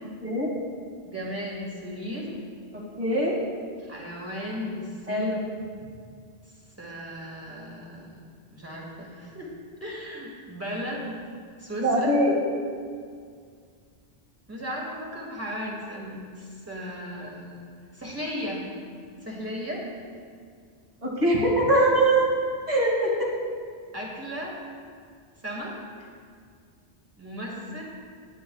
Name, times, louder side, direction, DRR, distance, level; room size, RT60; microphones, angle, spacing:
voice 1, 1.1-2.3 3.8-5.3 6.8-8.2 8.5-9.5 9.8-11.2 11.6-12.1 14.5-17.7 17.9-18.6 19.2-19.9 21.7-21.9 23.9-24.6 25.4-25.8 27.2-27.8, equal, 15° right, -3 dB, 2.1 m, -35 dB
voice 2, 2.7-3.3 5.1-5.4 11.8-12.3 21.0-22.3 22.7-23.3, right 1 dB, 40° right, -4 dB, 2.3 m, -22 dB
18.0 x 9.8 x 2.4 m, 2.1 s
omnidirectional pair, 1.1 m